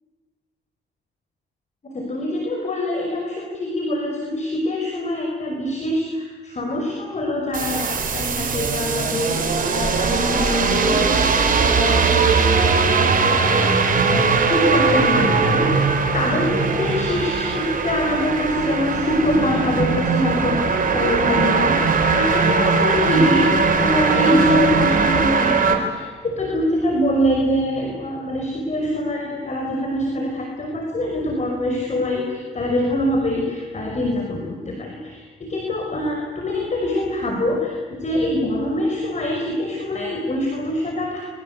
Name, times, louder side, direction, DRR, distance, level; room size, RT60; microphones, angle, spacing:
voice 1, 1.8-41.2, left 1 dB, 35° left, 1 dB, 5.4 m, -24 dB
sound 1, 7.5-25.8, right 4 dB, 45° right, 3.9 m, -20 dB
26.5 x 24.5 x 8.3 m, 1.5 s
cardioid pair, 90°, 20 cm